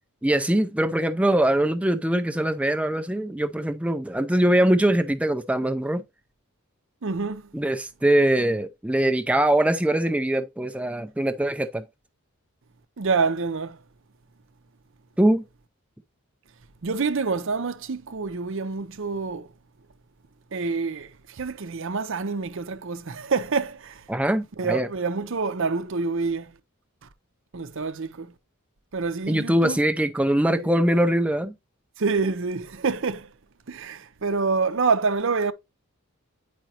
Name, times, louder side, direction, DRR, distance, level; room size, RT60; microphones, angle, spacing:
voice 1, 0.2-6.0 7.5-11.8 15.2-15.4 24.1-24.9 29.3-31.5, right 1 dB, 5° right, 0.4 m, -22 dB
voice 2, 7.0-7.5 13.0-13.8 16.8-19.5 20.5-24.1 24.6-26.5 27.5-28.3 28.9-29.8 30.5-30.8 32.0-33.3 33.7-35.5, right 4 dB, 60° right, 0.6 m, -27 dB
9.0 x 5.1 x 2.8 m
head